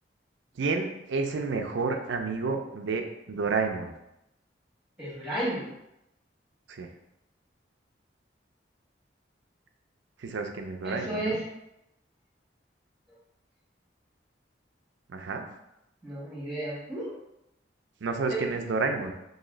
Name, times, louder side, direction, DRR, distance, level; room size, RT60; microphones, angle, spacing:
voice 1, 0.6-3.9 6.7-6.9 10.2-11.4 15.1-15.4 18.0-19.1, right 4 dB, 80° right, 5 dB, 0.5 m, -30 dB
voice 2, 5.0-5.7 10.8-11.4 16.0-17.1 18.3-18.4, right 1 dB, 5° right, -8 dB, 1.5 m, -32 dB
3.1 x 2.7 x 3.8 m, 0.86 s
head